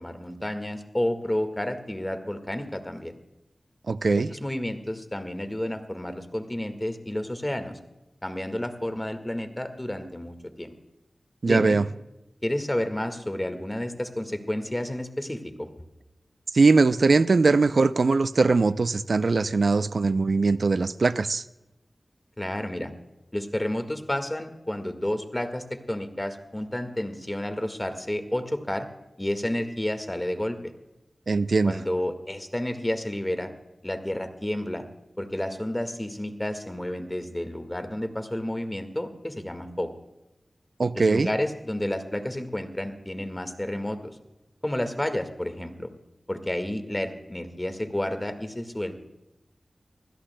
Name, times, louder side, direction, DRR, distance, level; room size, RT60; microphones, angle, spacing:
voice 1, 0.0-3.1 4.3-7.8 8.2-10.7 11.4-11.8 12.4-15.7 22.4-22.9 23.3-28.9 29.2-30.7 31.6-33.5 33.8-34.8 35.2-39.9 40.9-44.2 44.6-45.9 46.3-48.9, left 1 dB, 20° left, 8 dB, 1.7 m, -31 dB
voice 2, 3.9-4.3 11.4-11.9 16.5-21.4 31.3-31.8 40.8-41.3, right 3 dB, 75° right, 13 dB, 0.5 m, -21 dB
25.0 x 16.5 x 2.2 m, 0.97 s
wide cardioid pair, 60°, 0 cm